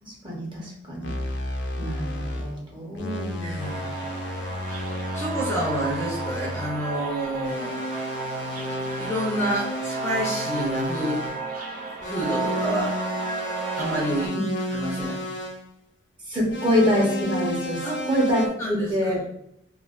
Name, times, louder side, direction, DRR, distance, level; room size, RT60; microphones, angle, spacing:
voice 1, 0.0-1.1 1.8-3.6 16.3-18.4 18.7-19.2, equal, 25° right, -3 dB, 0.8 m, -25 dB
sound 1, 1.0-2.6 2.9-6.8 7.4-11.5 12.0-15.6 16.5-18.5, equal, 65° left, 0.5 m, -32 dB
voice 2, 3.4-3.8 5.1-7.8 9.0-11.2 12.0-12.9 13.8-14.3 14.7-15.2 17.8-18.0 18.6-19.2, equal, 15° left, -4 dB, 0.6 m, -28 dB
sound 2, 3.6-14.3, right 4 dB, 45° right, 0.4 m, -33 dB
3.2 x 2.3 x 2.4 m, 0.75 s
head